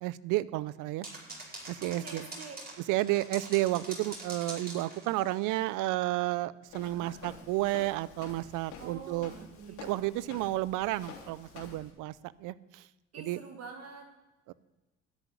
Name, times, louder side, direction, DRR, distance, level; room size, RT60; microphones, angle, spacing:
voice 1, 0.0-1.1 1.7-2.2 2.9-9.3 9.8-12.1 12.4-12.8 13.3-13.4 14.5-14.6, right 17 dB, 80° right, 19 dB, 0.6 m, -31 dB
sound 1, 1.0-5.6, right 2 dB, 30° right, 5.0 m, -44 dB
voice 2, 1.8-2.6 6.8-7.2 8.8-10.0 13.1-14.1, right 5 dB, 55° right, 3 dB, 1.7 m, -46 dB
Walk footsteps, 6.7-11.9, left 5 dB, 70° left, 3.2 m, -49 dB
13.0 x 6.2 x 9.8 m, 1.1 s
supercardioid pair, 85°, 31 cm